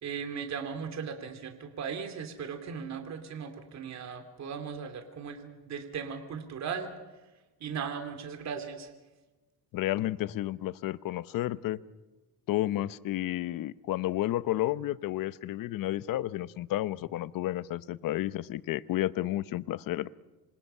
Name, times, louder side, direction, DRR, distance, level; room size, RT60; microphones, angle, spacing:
voice 1, 0.0-6.9 7.6-8.9, right 6 dB, 45° right, 6 dB, 2.8 m, -37 dB
voice 2, 9.7-11.8 12.5-20.1, left 14 dB, 60° left, 16 dB, 0.9 m, -31 dB
26.5 x 26.5 x 5.6 m, 1.1 s
cardioid pair, 120°, 38 cm